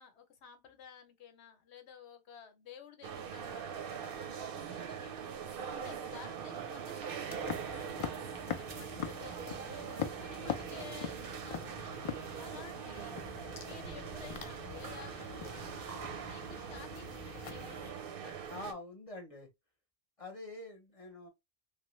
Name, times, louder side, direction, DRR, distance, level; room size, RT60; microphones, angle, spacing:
voice 1, 0.0-5.1 5.7-8.2 8.6-18.4, left 7 dB, 85° left, 1.0 m, -54 dB
sound 1, 3.0-18.7, right 7 dB, 65° right, 0.7 m, -42 dB
sound 2, 7.3-17.9, left 7 dB, 60° left, 0.3 m, -43 dB
voice 2, 18.5-19.5 20.2-21.3, left 2 dB, 35° left, 0.8 m, -45 dB
3.1 x 2.1 x 3.0 m
omnidirectional pair, 1.1 m